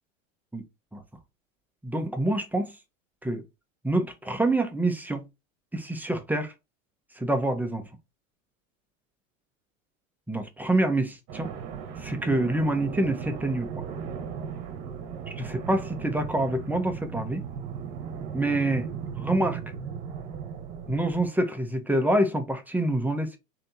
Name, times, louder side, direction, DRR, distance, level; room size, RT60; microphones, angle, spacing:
voice 1, 1.8-2.7 3.2-3.4 3.8-5.2 5.7-6.5 7.2-7.8 10.3-11.5 12.0-13.7 15.4-17.4 18.3-18.9 19.2-19.6 20.9-23.4, right 1 dB, 5° right, 0.7 m, -26 dB
sound 1, 11.3-21.3, right 7 dB, 45° right, 1.1 m, -37 dB
3.3 x 2.9 x 3.9 m
hypercardioid pair, 105°, 41 cm